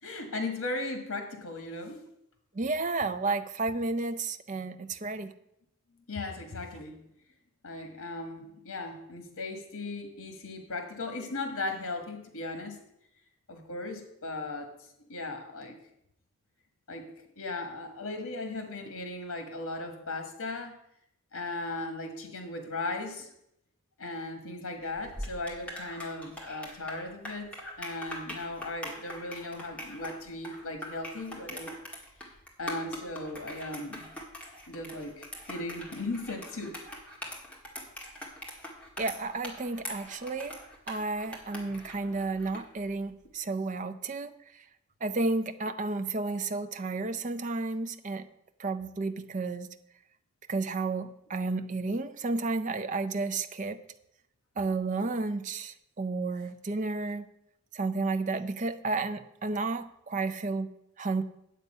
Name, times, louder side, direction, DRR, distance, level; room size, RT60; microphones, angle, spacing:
voice 1, 0.0-2.1 6.1-6.9 7.6-12.8 13.5-14.7 15.1-15.7 16.9-17.1 17.4-20.7 21.3-23.3 24.0-27.5 27.8-31.7 32.6-34.1 34.7-36.8, left 2 dB, 80° left, 6 dB, 1.4 m, -37 dB
voice 2, 2.5-5.3 39.0-40.6 40.9-44.3 45.0-48.3 48.6-49.7 50.5-53.8 54.6-57.3 57.7-60.7 61.0-61.2, right 3 dB, 35° right, 9 dB, 0.5 m, -32 dB
sound 1, 24.9-42.7, equal, 5° left, 1.6 m, -42 dB
9.3 x 7.2 x 5.4 m, 0.79 s
head